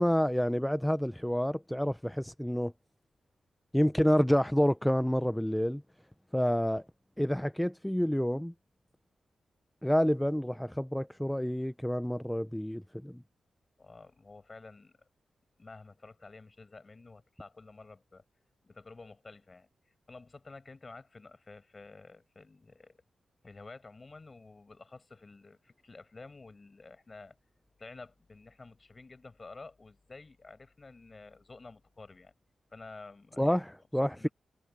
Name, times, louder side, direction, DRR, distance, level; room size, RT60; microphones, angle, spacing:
voice 1, 0.0-2.7 3.7-5.8 6.3-6.8 7.2-8.5 9.8-13.2 33.4-34.3, equal, 5° left, 0.6 m, -28 dB
voice 2, 13.8-15.0 15.6-18.2 18.6-19.7 20.1-23.0 23.4-27.4 27.8-32.3 32.7-33.6 34.0-34.3, left 3 dB, 35° left, 7.1 m, -51 dB
cardioid pair, 70°, 0 cm